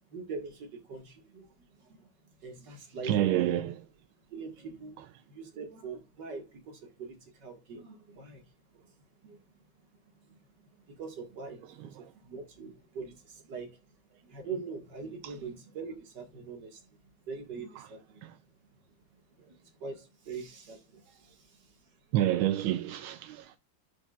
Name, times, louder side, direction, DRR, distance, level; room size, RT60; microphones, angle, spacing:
voice 1, 0.1-2.1 2.4-3.6 4.3-8.4 8.8-8.9 9.2-9.4 10.3-10.4 10.7-13.8 14.2-17.0 17.2-18.2 19.4-21.8, right 4 dB, 55° right, 2.4 m, -43 dB
voice 2, 3.0-3.8 5.0-5.1 11.6-11.9 15.2-15.4 17.7-17.9 18.2-18.4 22.1-23.6, right 12 dB, 85° right, 1.4 m, -29 dB
11.5 x 5.1 x 2.4 m
omnidirectional pair, 2.2 m